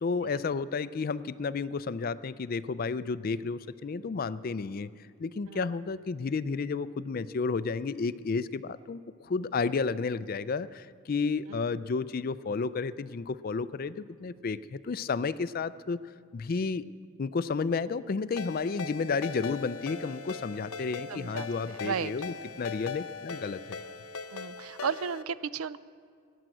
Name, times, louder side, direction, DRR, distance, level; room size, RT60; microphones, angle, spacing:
voice 1, 0.0-4.9 5.2-16.0 16.3-16.9 17.2-23.8, left 4 dB, 40° left, 16 dB, 0.4 m, -32 dB
Ringtone, 18.4-25.2, left 5 dB, 85° left, 0.8 m, -40 dB
voice 2, 21.1-22.1 24.3-25.8, right 7 dB, 75° right, 17 dB, 0.4 m, -35 dB
17.5 x 10.5 x 7.7 m, 2.2 s
head